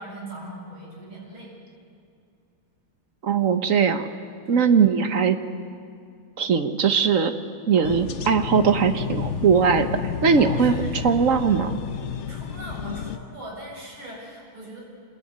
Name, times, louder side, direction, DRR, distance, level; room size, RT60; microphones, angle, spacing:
voice 1, 0.0-1.5 4.4-4.7 10.3-11.1 12.3-14.8, right 1 dB, 70° right, -4 dB, 8.4 m, -40 dB
voice 2, 3.2-4.1 4.5-5.4 6.4-7.3 7.7-10.7 11.0-11.8, right 6 dB, 45° right, 9 dB, 1.3 m, -20 dB
sound 1, 7.8-13.2, left 7 dB, 50° left, 0.8 m, -31 dB
26.5 x 20.5 x 9.6 m, 2.3 s
omnidirectional pair, 2.3 m